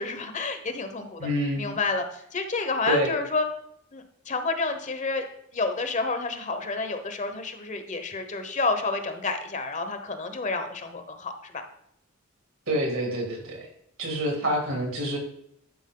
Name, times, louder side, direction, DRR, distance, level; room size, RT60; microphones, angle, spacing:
voice 1, 0.0-1.2 1.6-3.5 3.9-5.2 5.5-11.6, left 3 dB, 35° left, 7 dB, 0.9 m, -29 dB
voice 2, 1.2-1.7 2.9-3.1 12.7-13.7 14.0-15.2, equal, 75° right, 1 dB, 3.0 m, -27 dB
11.0 x 5.0 x 3.8 m, 0.73 s
head